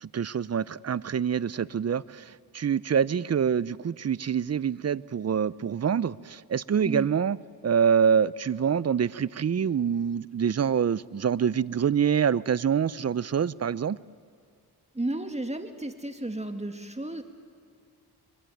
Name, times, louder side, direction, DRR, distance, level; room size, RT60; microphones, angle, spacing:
voice 1, 0.0-7.4 7.6-14.0, right 7 dB, 40° right, 19 dB, 0.6 m, -26 dB
voice 2, 14.9-17.2, right 1 dB, 15° right, 6 dB, 2.0 m, -33 dB
23.5 x 23.0 x 9.3 m, 2.2 s
cardioid pair, 65°, 39 cm